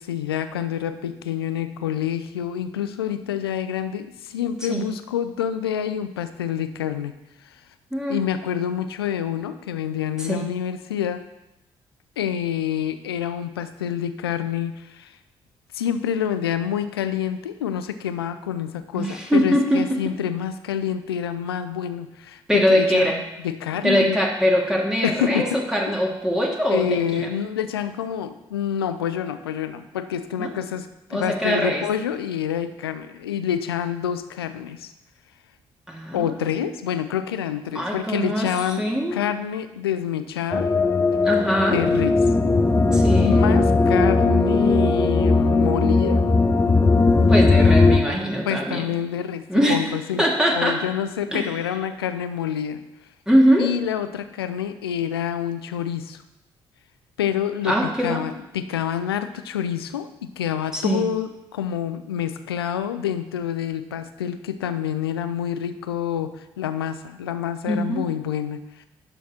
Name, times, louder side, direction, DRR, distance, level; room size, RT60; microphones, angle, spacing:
voice 1, 0.0-7.1 7.5-7.6 8.1-11.2 12.2-15.2 15.7-23.2 23.4-24.2 25.0-25.6 25.9-26.0 26.7-34.9 36.1-40.7 41.7-42.2 43.2-46.2 48.5-52.8 53.6-56.2 57.2-68.9, left 9 dB, 80° left, 11 dB, 0.5 m, -27 dB
voice 2, 18.9-19.8 22.5-23.2 23.8-26.9 27.1-27.2 30.4-30.5 31.1-31.8 35.9-36.8 37.7-38.5 38.8-39.2 41.2-41.8 42.9-43.4 47.3-48.9 49.5-49.8 50.2-50.8 51.3-51.5 53.3-53.7 57.6-58.2 60.7-61.1 67.7-68.0, equal, 5° right, -2 dB, 2.4 m, -22 dB
sound 1, 40.5-48.0, left 3 dB, 20° left, 1.0 m, -18 dB
11.5 x 7.1 x 4.5 m, 0.92 s
figure-of-eight pair, 40°, 13 cm